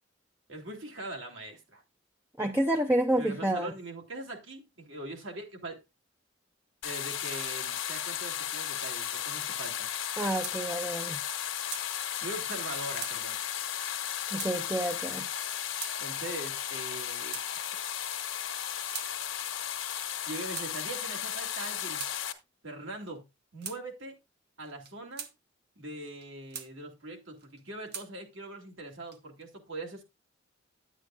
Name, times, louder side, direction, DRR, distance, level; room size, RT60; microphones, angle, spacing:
voice 1, 0.5-1.8 3.2-5.8 6.8-9.9 12.2-13.4 16.0-17.4 20.3-22.1 22.6-23.2 23.5-24.1 24.6-25.3 25.8-30.0, right 2 dB, 70° right, 2.5 m, -41 dB
voice 2, 2.4-3.7 10.2-11.2 14.3-15.3, right 1 dB, 10° right, 0.5 m, -29 dB
sound 1, 6.8-22.3, left 10 dB, 80° left, 1.2 m, -35 dB
sound 2, 10.2-10.6 10.9-11.0 11.3-11.9 12.6-12.7 13.0-13.2 14.0-14.1 14.3-14.5 15.3-15.4 15.8-16.0 16.7-17.5 18.3-19.1 19.9-20.2 20.5-20.7 21.5-22.2 23.0-23.2 23.6-23.8 24.6-25.3 26.0-26.7 27.4-28.1 28.9-29.4, right 7 dB, 55° right, 1.2 m, -42 dB
10.5 x 8.7 x 2.4 m
head